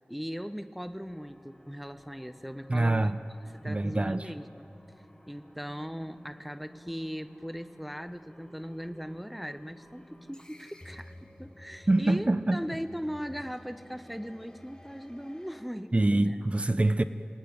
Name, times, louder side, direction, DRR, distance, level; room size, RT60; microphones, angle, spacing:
voice 1, 0.1-3.1 3.4-4.7 5.3-16.4, equal, ahead, 11 dB, 1.0 m, -39 dB
sound 1, 1.1-15.6, equal, 25° left, 4.3 m, -53 dB
voice 2, 2.7-3.2 3.7-4.3 11.9-12.6 15.9-17.0, right 2 dB, 40° right, 11 dB, 0.8 m, -25 dB
27.0 x 17.5 x 9.7 m, 3.0 s
wide cardioid pair, 50°, 3 cm